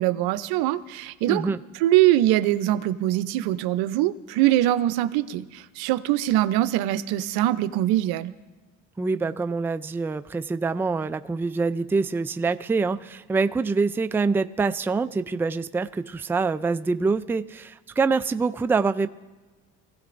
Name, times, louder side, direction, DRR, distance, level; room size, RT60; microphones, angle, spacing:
voice 1, 0.0-1.6 1.8-8.3, right 14 dB, 85° right, 13 dB, 0.7 m, -23 dB
voice 2, 1.3-1.6 9.0-19.1, right 4 dB, 5° right, 11 dB, 0.3 m, -25 dB
24.0 x 15.5 x 2.6 m, 1.3 s
supercardioid pair, 90°, 37 cm